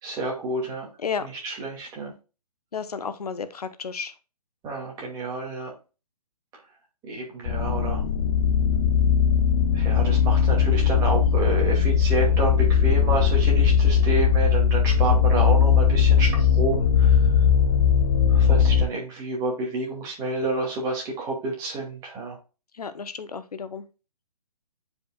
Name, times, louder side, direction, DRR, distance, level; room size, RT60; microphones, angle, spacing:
voice 1, 0.0-0.9 1.4-2.1 4.6-5.7 7.1-8.0 9.7-17.2 18.3-22.4, right 3 dB, 15° right, -1 dB, 2.2 m, -29 dB
voice 2, 2.7-4.1 22.8-23.8, left 6 dB, 70° left, 12 dB, 0.8 m, -32 dB
sound 1, 7.5-18.9, left 7 dB, 30° left, 0.5 m, -19 dB
9.1 x 5.0 x 2.3 m, 0.31 s
hypercardioid pair, 150°, 20 cm